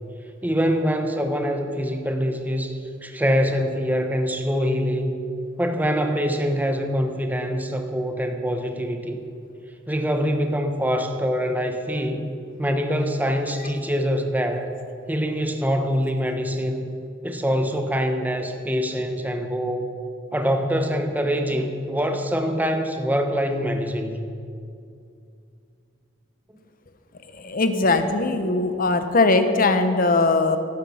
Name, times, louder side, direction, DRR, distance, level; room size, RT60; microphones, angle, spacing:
voice 1, 0.4-5.2 5.6-9.2 9.9-12.3 12.6-14.7 15.1-16.9 17.2-19.9 20.3-24.3, equal, 10° right, 5 dB, 1.1 m, -24 dB
voice 2, 27.3-30.6, left 3 dB, 50° left, 8 dB, 1.0 m, -20 dB
13.5 x 12.0 x 5.8 m, 2.4 s
head